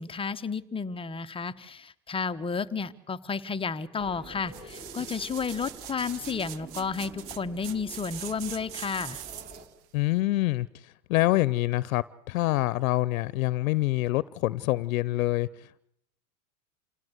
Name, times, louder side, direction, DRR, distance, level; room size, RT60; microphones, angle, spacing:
voice 1, 0.0-9.2, left 5 dB, 15° left, 10 dB, 0.9 m, -32 dB
sound 1, 4.0-9.7, right 2 dB, 20° right, 4.1 m, -48 dB
sound 2, 4.5-9.7 10.2-10.3, right 12 dB, 50° right, 1.5 m, -42 dB
voice 2, 9.9-15.8, left 18 dB, 70° left, 20 dB, 0.8 m, -26 dB
28.0 x 17.5 x 8.0 m, 0.74 s
supercardioid pair, 125°, 42 cm